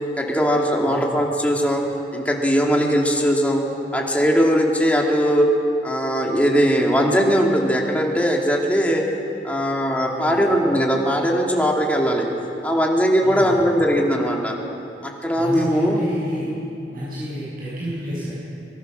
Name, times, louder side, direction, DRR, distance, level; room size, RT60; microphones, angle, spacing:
voice 1, 0.2-1.8 2.1-3.6 3.9-5.5 5.8-9.0 9.4-12.3 12.6-14.5 15.0-16.0, equal, 10° left, -1 dB, 2.6 m, -19 dB
voice 2, 0.8-1.2 10.0-10.5 13.2-13.7 15.3-16.5 16.9-18.3, equal, 55° right, -10 dB, 7.2 m, -30 dB
24.0 x 22.0 x 6.6 m, 2.9 s
head